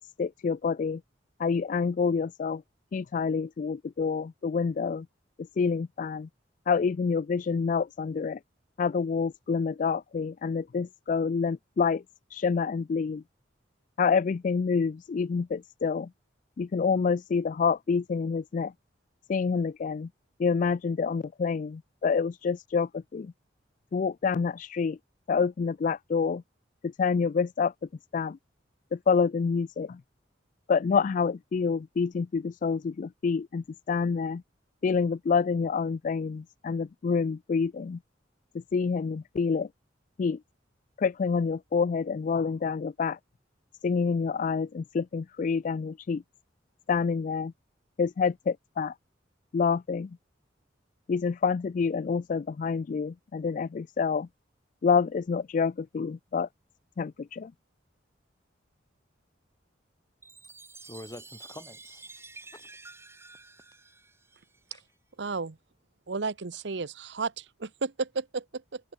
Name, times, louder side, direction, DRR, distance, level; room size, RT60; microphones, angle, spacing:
voice 1, 0.2-1.0 1.4-2.6 2.9-5.0 5.6-6.3 6.7-8.4 8.8-12.0 12.3-13.2 14.0-16.1 16.6-18.7 19.3-20.1 20.4-23.3 23.9-25.0 25.3-26.4 27.0-27.7 28.1-28.4 29.1-30.0 30.7-34.4 34.8-38.0 38.7-39.7 40.2-40.4 41.0-43.2 43.8-46.2 46.9-47.5 48.0-48.9 49.5-50.1 51.1-54.3 54.8-56.5 57.0-57.5, left 5 dB, 45° left, 0.3 m, -27 dB
Chime, 60.2-64.8, right 3 dB, 15° right, 5.6 m, -50 dB
voice 2, 60.8-62.7 64.7-64.8, left 1 dB, 20° left, 5.2 m, -47 dB
voice 3, 65.2-65.6 66.1-68.8, right 4 dB, 65° right, 0.8 m, -33 dB
head